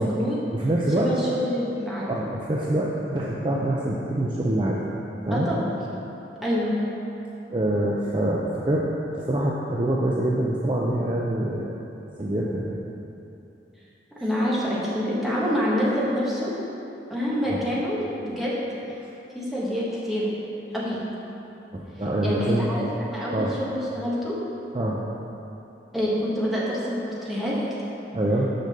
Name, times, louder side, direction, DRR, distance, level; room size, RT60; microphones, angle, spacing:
voice 1, 0.0-0.4 1.0-2.1 5.3-5.8 6.4-6.7 14.2-16.5 17.1-18.5 19.3-20.3 20.7-21.1 22.2-24.4 25.9-27.5, equal, ahead, -8 dB, 1.5 m, -26 dB
voice 2, 0.5-1.2 2.1-4.8 5.3-5.5 7.5-8.9 9.1-11.7 12.2-12.8 17.5-17.6 21.7-22.7 23.3-23.5 24.7-25.0 28.1-28.5, right 1 dB, 25° right, -4 dB, 0.5 m, -25 dB
6.6 x 5.1 x 6.5 m, 2.9 s
head